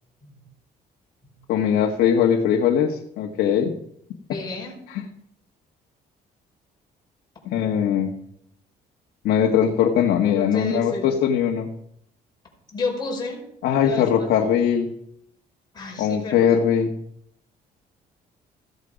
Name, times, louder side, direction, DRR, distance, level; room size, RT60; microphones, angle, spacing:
voice 1, 1.5-3.7 4.9-5.0 7.5-8.1 9.2-11.7 13.6-14.9 16.0-16.9, left 8 dB, 85° left, 1 dB, 1.4 m, -20 dB
voice 2, 4.3-4.7 10.4-11.1 12.7-13.4 13.8-14.3 15.7-16.6, left 3 dB, 25° left, -2 dB, 5.0 m, -31 dB
15.0 x 11.0 x 5.1 m, 0.72 s
cardioid pair, 110°, 17 cm